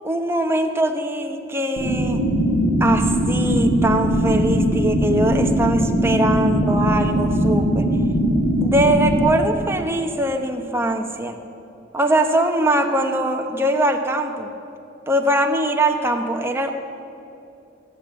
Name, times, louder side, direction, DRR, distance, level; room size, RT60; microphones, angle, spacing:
voice 1, 0.0-2.2 2.8-7.9 8.6-11.3 11.9-14.5 15.1-16.8, right 1 dB, 15° right, 4 dB, 0.9 m, -21 dB
Underwater White Noise, 1.8-9.2, equal, 50° left, 3.6 m, -20 dB
14.0 x 9.0 x 9.0 m, 2.7 s
head